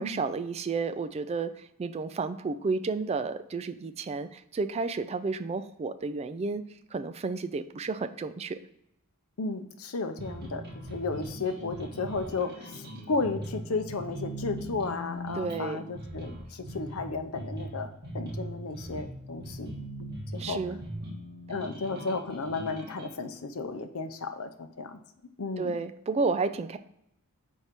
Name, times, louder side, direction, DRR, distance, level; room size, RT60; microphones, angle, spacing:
voice 1, 0.0-6.6 6.9-8.6 15.4-15.8 20.4-20.8 25.6-26.8, right 4 dB, 30° right, 10 dB, 0.3 m, -31 dB
voice 2, 9.4-20.6 21.5-25.0 25.4-25.8, left 3 dB, 65° left, 8 dB, 0.6 m, -34 dB
sound 1, 10.2-23.1, right 1 dB, 45° right, 1.4 m, -40 dB
4.6 x 4.2 x 5.0 m, 0.80 s
head